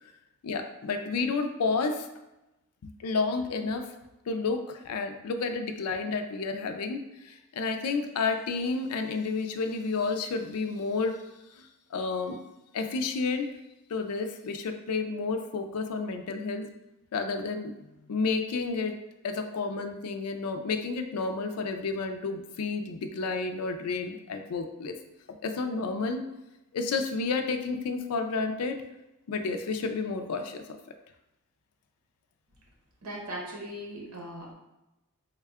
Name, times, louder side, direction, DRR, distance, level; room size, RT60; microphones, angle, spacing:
voice 1, 0.4-2.1 2.8-3.9 4.3-11.2 11.6-12.4 12.7-13.5 13.9-16.7 17.1-17.7 18.1-25.0 25.3-26.2 26.7-28.8 29.3-30.6, left 4 dB, 90° left, 7 dB, 0.4 m, -31 dB
voice 2, 33.0-34.5, equal, 75° right, -1 dB, 0.9 m, -39 dB
3.5 x 2.2 x 3.5 m, 0.96 s
head